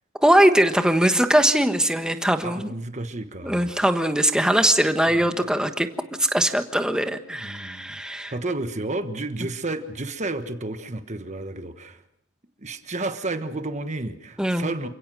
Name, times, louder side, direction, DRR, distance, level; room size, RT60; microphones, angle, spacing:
voice 1, 0.2-2.7 3.4-5.9 6.2-8.3 14.4-14.7, right 1 dB, 5° right, 7 dB, 1.3 m, -21 dB
voice 2, 2.4-3.8 7.3-12.0 12.6-14.9, right 2 dB, 35° right, 9 dB, 1.3 m, -31 dB
28.5 x 17.0 x 6.2 m, 0.78 s
head